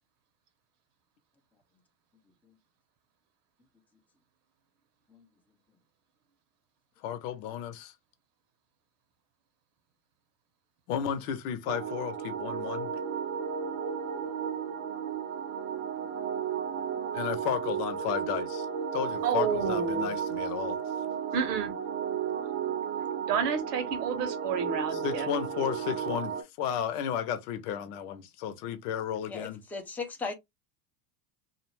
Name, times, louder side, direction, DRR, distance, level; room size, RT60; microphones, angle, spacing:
voice 1, 7.0-7.9 10.9-12.9 17.1-18.7 18.9-20.8 24.9-29.6, left 9 dB, 70° left, 0.8 m, -33 dB
sound 1, 11.7-26.4, right 7 dB, 55° right, 0.8 m, -33 dB
voice 2, 19.2-20.1 21.3-21.8 23.3-25.3, right 7 dB, 80° right, 1.1 m, -30 dB
voice 3, 29.3-30.3, left 4 dB, 5° left, 0.5 m, -37 dB
2.6 x 2.0 x 3.0 m
supercardioid pair, 105°, 47 cm